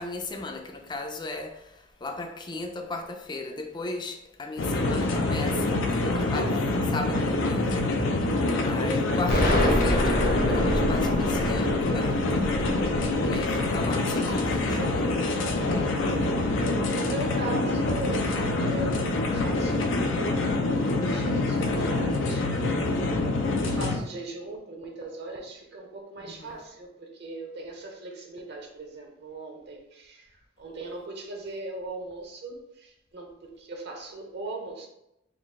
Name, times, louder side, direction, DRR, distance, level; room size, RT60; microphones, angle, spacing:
voice 1, 0.0-8.3 8.6-12.8 13.3-15.3 26.2-26.6, left 2 dB, 25° left, 0.4 m, -36 dB
sound 1, 4.6-24.0, left 2 dB, 80° left, 0.5 m, -26 dB
Explosion, 9.3-14.1, left 1 dB, 55° left, 0.8 m, -26 dB
voice 2, 15.7-22.5 23.6-34.9, right 2 dB, 60° right, 0.7 m, -39 dB
3.8 x 2.4 x 3.5 m
head